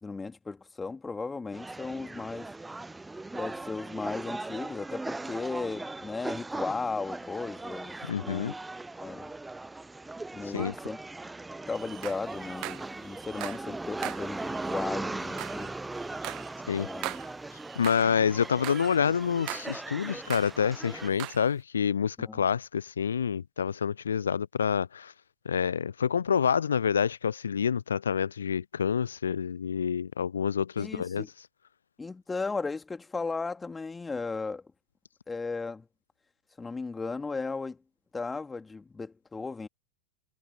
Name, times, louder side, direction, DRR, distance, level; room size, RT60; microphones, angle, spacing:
voice 1, 0.0-2.5 3.3-8.6 9.0-9.3 10.3-11.0 11.7-15.8 16.7-17.1 22.2-22.4 30.8-31.3 32.0-34.6 35.3-35.8 36.6-37.8 38.1-39.7, left 4 dB, 10° left, 3.0 m, -36 dB
sound 1, 1.5-21.1, right 2 dB, 10° right, 0.5 m, -39 dB
voice 2, 8.0-8.5 10.5-10.7 16.7-16.9 17.8-25.1 25.5-31.2, left 7 dB, 70° left, 0.4 m, -28 dB
sound 2, 11.7-13.7 14.0-18.1 18.4-20.6 20.9-21.5, right 21 dB, 40° right, 0.8 m, -41 dB
figure-of-eight pair, 90°, 0 cm